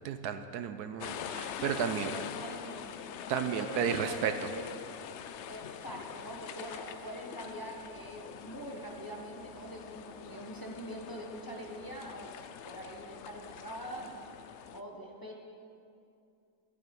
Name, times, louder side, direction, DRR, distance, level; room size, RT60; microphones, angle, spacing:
voice 1, 0.0-2.1 3.3-4.3, right 8 dB, 80° right, 9 dB, 1.2 m, -33 dB
sound 1, 1.0-14.8, left 8 dB, 70° left, 0.7 m, -44 dB
voice 2, 2.1-3.1 3.5-4.8 5.4-14.4 14.7-15.4, right 1 dB, 15° left, -1 dB, 1.1 m, -43 dB
12.5 x 12.0 x 5.4 m, 2.5 s
omnidirectional pair, 1.7 m